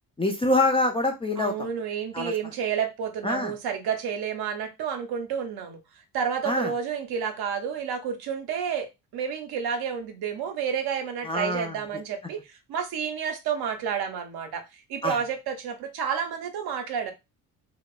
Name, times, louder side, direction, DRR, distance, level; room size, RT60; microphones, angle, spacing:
voice 1, 0.2-1.5 2.1-2.3 3.2-3.5 6.4-6.7 11.2-11.7 15.0-15.2, left 2 dB, 15° left, 4 dB, 0.4 m, -25 dB
voice 2, 1.4-5.8 6.1-12.4 12.7-14.6 14.9-17.1, right 7 dB, 70° right, 7 dB, 0.7 m, -30 dB
2.8 x 2.0 x 2.3 m, 0.23 s
cardioid pair, 80°, 40 cm